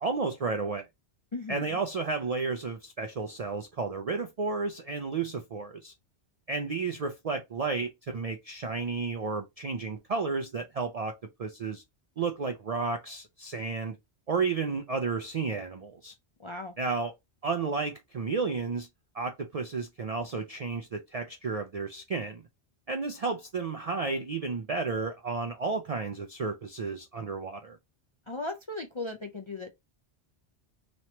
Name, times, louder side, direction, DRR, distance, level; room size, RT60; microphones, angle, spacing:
voice 1, 0.0-0.9 1.5-5.9 6.5-11.1 11.4-11.8 12.2-14.0 14.3-16.1 16.8-17.1 17.4-18.9 19.1-22.4 22.9-27.8, right 4 dB, 50° right, 0.4 m, -32 dB
voice 2, 1.3-1.6 16.4-16.7 28.3-29.7, left 2 dB, 40° left, 0.4 m, -37 dB
3.1 x 2.9 x 4.2 m
omnidirectional pair, 1.1 m